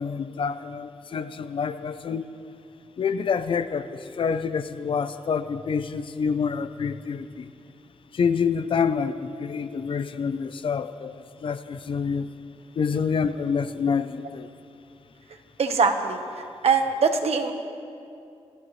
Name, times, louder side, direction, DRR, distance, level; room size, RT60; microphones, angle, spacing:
voice 1, 0.0-2.2 3.0-7.5 8.1-12.3 12.8-14.5, left 6 dB, 55° left, 12 dB, 0.6 m, -27 dB
voice 2, 15.6-17.5, right 5 dB, 70° right, 5 dB, 1.2 m, -23 dB
27.5 x 16.0 x 3.2 m, 2.6 s
wide cardioid pair, 150°, 11 cm